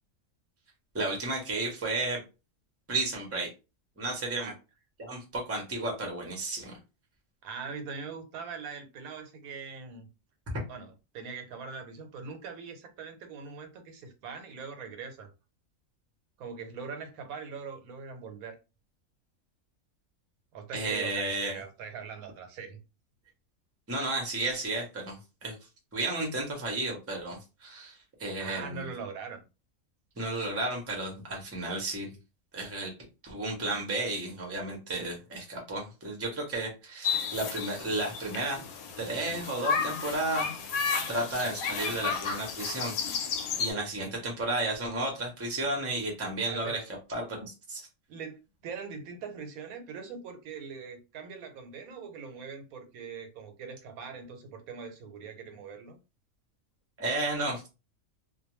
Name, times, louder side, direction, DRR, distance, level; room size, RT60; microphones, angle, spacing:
voice 1, 0.9-2.2 2.9-3.5 4.0-4.5 5.0-6.8 20.7-21.6 23.9-25.6 25.9-28.9 30.2-32.2 32.5-32.9 33.2-38.6 39.0-40.5 40.9-42.9 43.2-43.3 43.6-46.8 47.1-47.9 57.0-57.7, right 2 dB, 15° right, 0.6 m, -33 dB
voice 2, 7.4-10.1 10.7-15.3 16.4-18.6 20.5-22.8 28.4-29.4 46.5-46.8 48.1-56.0, right 5 dB, 90° right, 1.1 m, -42 dB
sound 1, 37.0-43.7, left 6 dB, 85° left, 1.0 m, -33 dB
2.3 x 2.2 x 3.0 m
omnidirectional pair, 1.5 m